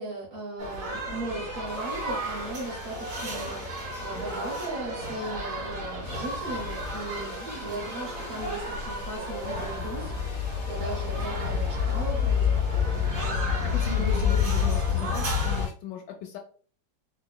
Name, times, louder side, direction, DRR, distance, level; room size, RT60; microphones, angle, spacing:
voice 1, 0.0-10.1 10.4-14.4, right 2 dB, 50° right, -5 dB, 1.4 m, -37 dB
sound 1, 0.6-15.7, left 4 dB, 80° right, 2.5 m, -29 dB
sound 2, 1.7-5.4 6.0-15.7, left 5 dB, 50° left, 1.1 m, -47 dB
voice 2, 13.6-16.4, left 8 dB, 85° left, 1 dB, 1.3 m, -37 dB
4.3 x 3.0 x 2.2 m, 0.42 s
omnidirectional pair, 1.9 m